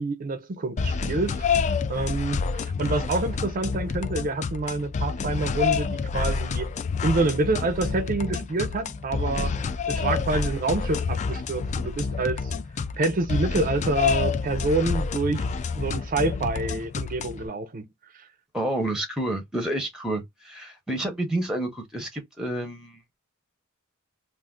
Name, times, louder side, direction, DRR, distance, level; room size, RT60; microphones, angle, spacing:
voice 1, 0.0-1.5 1.9-6.7 7.0-9.6 9.9-12.5 13.0-17.9 18.1-18.2, right 3 dB, 40° right, 0.5 m, -27 dB
sound 1, 0.8-17.5, left 5 dB, 35° left, 0.3 m, -28 dB
voice 2, 18.5-23.0, right 1 dB, 5° right, 0.7 m, -29 dB
2.5 x 2.4 x 3.6 m
head